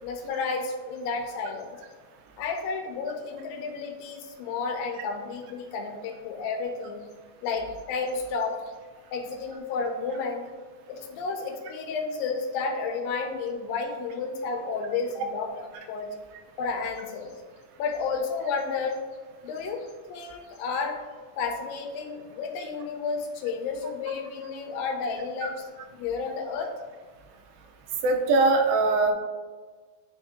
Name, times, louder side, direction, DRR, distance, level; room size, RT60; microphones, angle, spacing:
voice 1, 0.0-1.8 2.4-7.0 7.4-8.7 9.1-10.4 10.9-16.2 16.6-17.3 17.8-19.0 19.4-21.0 21.4-25.6 26.0-26.7, left 4 dB, 85° left, 3 dB, 2.5 m, -31 dB
voice 2, 28.0-29.1, right 3 dB, 90° right, 3 dB, 2.5 m, -21 dB
10.0 x 3.7 x 2.6 m, 1.4 s
omnidirectional pair, 4.1 m